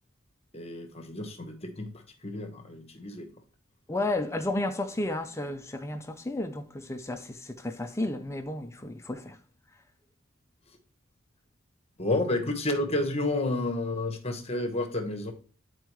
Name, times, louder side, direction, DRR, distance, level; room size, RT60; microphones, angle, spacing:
voice 1, 0.5-3.3 12.0-15.3, left 2 dB, 30° left, 1.1 m, -31 dB
voice 2, 3.9-9.4, left 2 dB, 15° left, 0.5 m, -32 dB
9.5 x 4.6 x 3.0 m
head